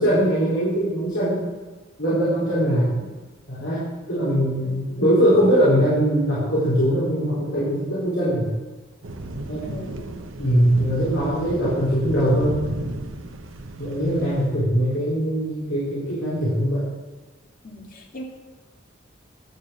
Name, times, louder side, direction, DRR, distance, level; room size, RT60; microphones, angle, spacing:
voice 1, 0.0-1.4 2.0-2.9 3.5-3.8 4.1-8.5 9.5-9.6 10.4-12.6 13.8-16.8, equal, 80° left, -11 dB, 4.3 m, -21 dB
voice 2, 4.6-5.0 9.6-10.2 17.6-18.2, equal, 45° left, 1 dB, 1.8 m, -39 dB
sound 1, 9.0-14.5, right 1 dB, 85° right, 1.0 m, -34 dB
11.5 x 7.2 x 6.4 m, 1.2 s
head